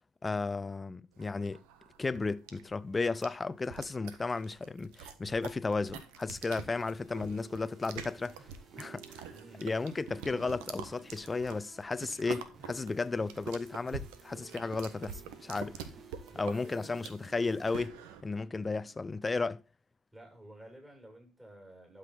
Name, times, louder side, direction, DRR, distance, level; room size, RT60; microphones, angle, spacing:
voice 1, 0.2-1.6 2.0-8.3 8.8-9.3 9.6-15.9 16.4-19.6, left 3 dB, 25° left, 0.5 m, -34 dB
sound 1, 1.2-18.2, right 7 dB, 80° right, 1.3 m, -46 dB
sound 2, 6.3-19.1, right 5 dB, 50° right, 2.1 m, -56 dB
voice 2, 9.3-9.7 16.3-17.1 20.1-22.0, right 1 dB, 15° right, 6.8 m, -52 dB
11.5 x 6.5 x 3.9 m
hypercardioid pair, 65°, 0 cm